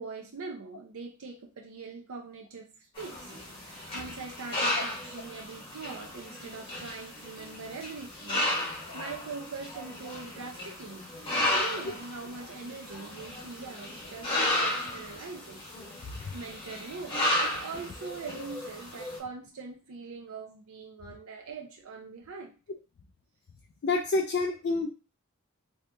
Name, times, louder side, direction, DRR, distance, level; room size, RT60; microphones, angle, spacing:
voice 1, 0.0-3.3 3.6-8.5 8.9-11.0 11.3-15.6 16.0-22.6, right 4 dB, 70° right, 1 dB, 0.5 m, -42 dB
sound 1, 3.0-19.2, left 1 dB, 25° left, 1.2 m, -34 dB
voice 2, 23.8-24.9, left 3 dB, 50° left, 2 dB, 0.4 m, -28 dB
2.8 x 2.7 x 3.3 m, 0.33 s
head